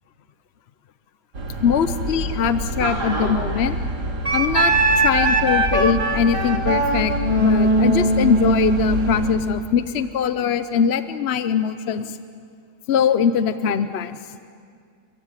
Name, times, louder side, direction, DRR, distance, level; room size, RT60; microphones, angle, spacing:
sound 1, 1.3-9.4, right 1 dB, 70° right, 3.3 m, -28 dB
voice 1, 1.6-3.8 4.3-7.1 7.4-12.2 12.9-14.4, left 7 dB, 55° left, 11 dB, 0.7 m, -22 dB
Wind instrument woodwind instrument, 4.2-9.6, right 2 dB, 20° right, 1.6 m, -20 dB
29.0 x 15.5 x 9.8 m, 2.2 s
omnidirectional pair, 1.8 m